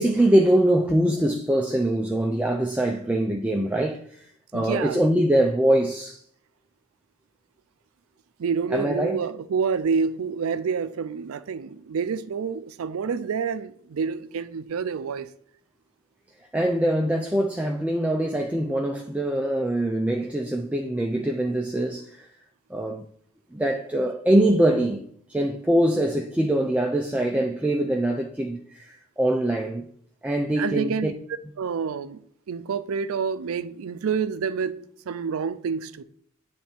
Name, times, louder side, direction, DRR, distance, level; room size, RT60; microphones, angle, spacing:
voice 1, 0.0-6.2 8.7-9.2 16.5-22.3 22.7-23.0 23.5-25.0 25.3-29.9 30.2-31.1, right 1 dB, 5° right, 0.3 m, -23 dB
voice 2, 4.5-5.0 8.4-15.3 30.6-31.1 31.6-32.2 32.5-34.8 35.1-36.0, right 6 dB, 80° right, 0.4 m, -28 dB
8.5 x 3.4 x 4.3 m
head